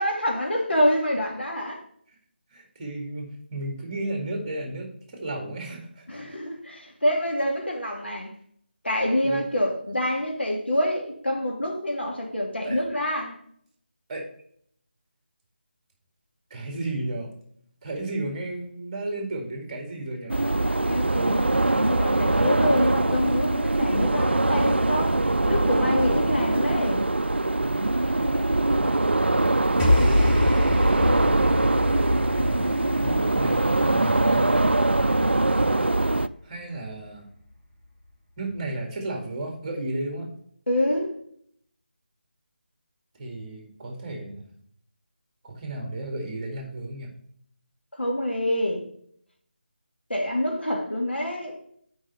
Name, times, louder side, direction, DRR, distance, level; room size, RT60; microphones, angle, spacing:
voice 1, 0.0-1.8 6.1-8.3 8.8-13.4 20.9-25.2 25.5-27.0 40.7-41.1 47.9-48.9 50.1-51.6, left 1 dB, 80° left, 2.6 m, -26 dB
voice 2, 2.5-4.9 5.2-6.2 9.2-9.4 12.6-12.8 14.1-14.3 16.5-17.3 17.8-20.3 32.4-34.5 36.4-37.3 38.4-40.3 43.2-44.5 45.4-47.1, right 2 dB, 25° right, 2.2 m, -33 dB
sound 1, 20.3-36.3, right 2 dB, 85° right, 0.4 m, -22 dB
Deep Impact, 29.8-36.2, left 1 dB, 15° left, 1.8 m, -26 dB
6.2 x 5.3 x 6.7 m
figure-of-eight pair, 160°, 6 cm